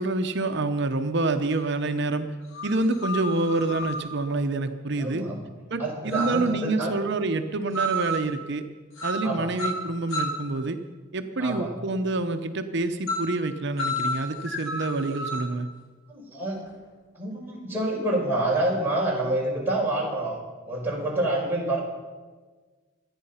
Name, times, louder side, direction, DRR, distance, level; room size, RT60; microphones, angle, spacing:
voice 1, 0.0-2.3 2.6-5.2 5.7-8.6 9.0-10.8 11.1-15.7, right 2 dB, 55° right, 7 dB, 0.8 m, -27 dB
sound 1, 1.5-1.6 2.5-4.1 6.1-6.6 7.7-8.3 9.0-9.3 9.6-10.5 13.1-13.4 13.8-15.6, right 1 dB, 75° left, 2.7 m, -30 dB
voice 2, 5.0-5.4 5.8-6.9 9.2-9.5 11.4-11.7 16.1-16.6 17.1-20.4 20.7-21.8, right 1 dB, 10° right, -4 dB, 4.9 m, -27 dB
25.5 x 9.8 x 5.7 m, 1.4 s
head